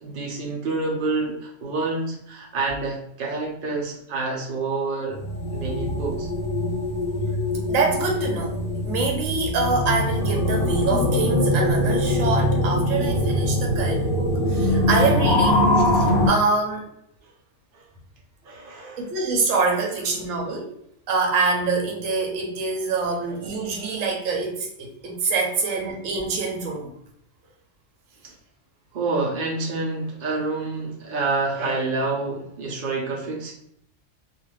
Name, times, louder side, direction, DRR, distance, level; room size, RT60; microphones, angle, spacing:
voice 1, 0.0-5.2 5.5-6.3 17.7-17.8 18.4-19.1 28.2-28.3 28.9-33.5, right 3 dB, 50° right, -1 dB, 0.7 m, -28 dB
sound 1, 5.1-16.3, left 1 dB, 45° left, 0.9 m, -22 dB
voice 2, 7.7-8.6 8.8-16.9 19.0-20.7 21.1-26.9, right 3 dB, 80° right, 1 dB, 1.1 m, -25 dB
2.5 x 2.4 x 3.1 m, 0.71 s
omnidirectional pair, 1.3 m